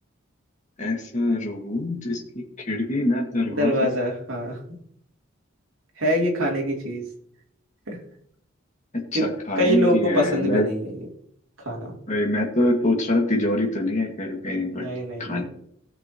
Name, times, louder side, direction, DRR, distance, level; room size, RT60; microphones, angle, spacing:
voice 1, 0.8-3.7 8.9-10.7 12.1-14.9 15.2-15.4, left 2 dB, 35° left, 0 dB, 2.1 m, -24 dB
voice 2, 3.5-4.8 6.0-7.1 7.9-8.0 9.1-9.3 9.6-11.0 11.6-11.9 14.7-15.4, equal, 85° right, -1 dB, 3.1 m, -24 dB
17.5 x 6.1 x 3.0 m, 0.69 s
head